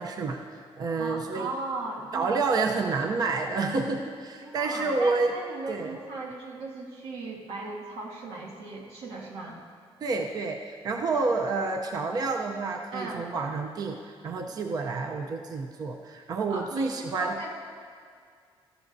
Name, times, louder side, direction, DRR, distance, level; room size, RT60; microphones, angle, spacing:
voice 1, 0.0-1.5 2.1-5.3 5.7-6.0 10.0-17.3, right 3 dB, 40° right, 3 dB, 0.6 m, -29 dB
voice 2, 0.9-2.3 4.4-9.6 12.9-13.3 16.5-17.5, right 3 dB, 90° right, -2 dB, 2.0 m, -37 dB
18.0 x 14.0 x 2.7 m, 2.2 s
cardioid pair, 165°, 10 cm